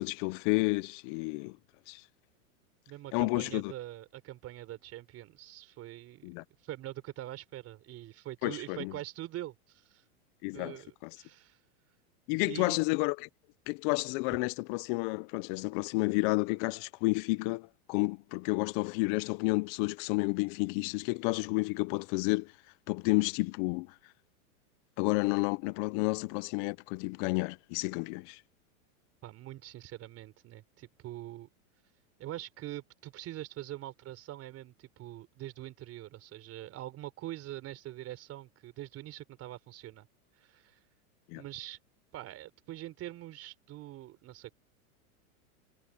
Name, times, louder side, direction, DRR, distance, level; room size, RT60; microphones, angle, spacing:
voice 1, 0.0-1.6 1.9-2.0 3.1-3.7 6.2-6.4 8.4-8.9 10.4-10.8 11.0-11.1 12.3-13.3 13.7-22.5 22.9-23.9 25.0-28.4 41.3-41.4, left 26 dB, 35° left, 0.5 m, -31 dB
voice 2, 2.9-6.3 6.6-10.0 10.5-11.6 12.4-12.8 29.2-31.5 32.2-40.1 40.3-40.8 41.3-41.8 42.1-44.5, right 14 dB, 35° right, 3.9 m, -44 dB
hypercardioid pair, 130°, 43 cm